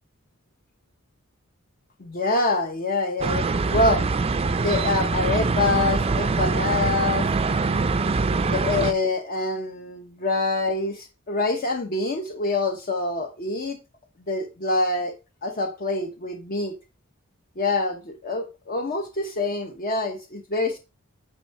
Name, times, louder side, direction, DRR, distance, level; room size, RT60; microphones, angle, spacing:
voice 1, 2.0-4.1 4.5-7.3 8.4-13.8 14.3-15.1 15.4-16.8 17.6-20.8, left 2 dB, 45° left, 0.9 m, -26 dB
sound 1, 3.2-8.9, right 4 dB, 30° right, 0.4 m, -23 dB
9.1 x 4.6 x 4.1 m
head